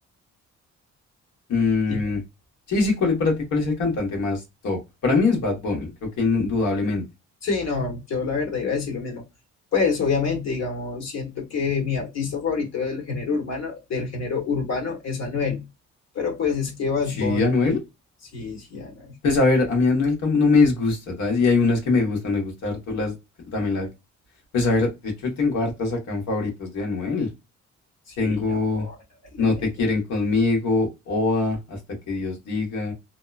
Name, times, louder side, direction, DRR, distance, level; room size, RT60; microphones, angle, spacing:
voice 1, 1.5-2.2 2.7-7.0 17.2-17.8 19.2-23.1 23.5-23.9 24.5-27.3 28.2-28.9 29.4-31.8 32.1-32.9, left 3 dB, 75° left, 1 dB, 1.3 m, -22 dB
voice 2, 7.4-9.2 9.7-15.6 16.1-17.7 18.3-19.2 28.1-28.9 29.3-29.6, left 5 dB, 60° left, 2 dB, 1.3 m, -27 dB
2.8 x 2.1 x 2.4 m, 0.23 s
cardioid pair, 90°, 30 cm